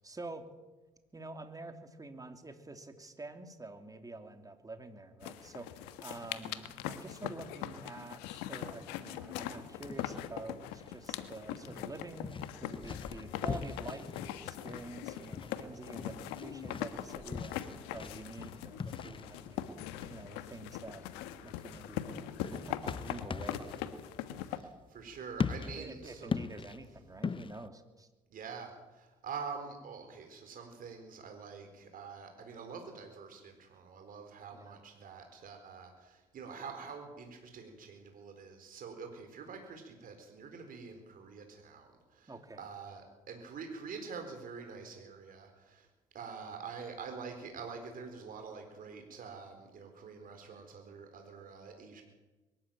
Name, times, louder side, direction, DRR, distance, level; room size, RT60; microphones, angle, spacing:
voice 1, 0.0-0.5 1.1-17.6 17.9-21.0 21.4-23.7 25.8-28.1 34.5-34.8 42.3-42.7, right 2 dB, 20° right, 7 dB, 3.0 m, -47 dB
sound 1, 5.2-24.6, left 11 dB, 85° left, 1.5 m, -42 dB
sound 2, 9.8-27.7, left 5 dB, 30° left, 0.8 m, -42 dB
voice 2, 24.5-26.3 28.3-45.9 46.1-52.0, right 5 dB, 55° right, 4 dB, 4.1 m, -46 dB
22.5 x 13.0 x 9.1 m, 1.1 s
supercardioid pair, 70°, 17 cm